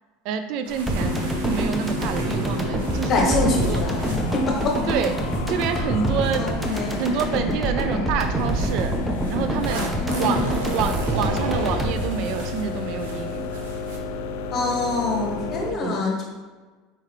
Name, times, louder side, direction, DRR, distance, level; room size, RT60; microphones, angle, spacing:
voice 1, 0.2-3.8 4.9-6.5 7.0-9.0 9.3-9.9 10.2-10.4 10.7-13.6 15.7-16.1, right 7 dB, 65° right, 9 dB, 0.4 m, -28 dB
sound 1, 0.6-7.7 8.4-14.0, right 2 dB, 85° right, 0.8 m, -37 dB
sound 2, 0.9-13.2 13.5-13.6, right 1 dB, 10° right, 0.7 m, -26 dB
sound 3, 1.0-15.7, left 3 dB, 75° left, 0.4 m, -32 dB
voice 2, 3.0-4.8 6.4-6.9 10.0-10.4 14.5-16.2, left 3 dB, 40° left, 0 dB, 1.2 m, -25 dB
4.3 x 3.7 x 3.1 m, 1.3 s
hypercardioid pair, 95°, 0 cm